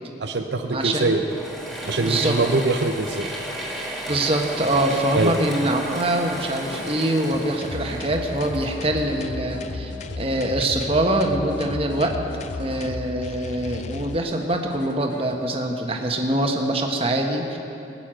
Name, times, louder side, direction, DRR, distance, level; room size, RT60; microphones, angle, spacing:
voice 1, 0.2-1.2 1.9-3.3 5.1-5.4, right 2 dB, 70° right, 5 dB, 0.7 m, -23 dB
voice 2, 0.7-1.1 2.0-2.4 4.1-12.2 12.6-17.6, right 1 dB, 30° right, 2 dB, 1.3 m, -24 dB
Mechanisms / Drill, 1.0-9.6, equal, ahead, 2.2 m, -34 dB
sound 1, 4.1-10.9 11.3-13.3 13.7-15.7, left 2 dB, 75° left, 1.2 m, -43 dB
sound 2, 7.6-14.2, left 3 dB, 35° left, 0.3 m, -34 dB
20.5 x 7.0 x 9.1 m, 2.8 s
head